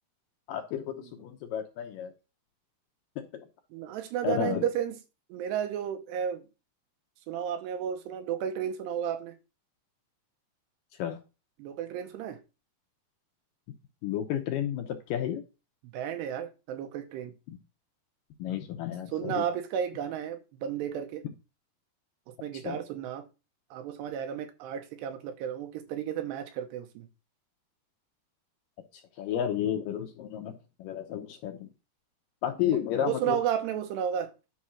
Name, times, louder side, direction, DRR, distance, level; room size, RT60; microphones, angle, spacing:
voice 1, 0.5-2.1 3.2-3.3 4.2-4.7 11.0-11.2 14.0-15.4 17.5-17.6 18.4-19.4 22.6-22.8 29.2-31.7 32.4-33.4, left 10 dB, 75° left, 2.1 m, -32 dB
voice 2, 3.7-5.0 5.3-6.4 7.3-9.4 11.6-12.4 15.9-17.3 19.1-21.2 22.3-23.3 23.7-27.1 32.7-34.3, right 9 dB, 90° right, 3.2 m, -33 dB
10.5 x 4.2 x 6.3 m
omnidirectional pair, 4.8 m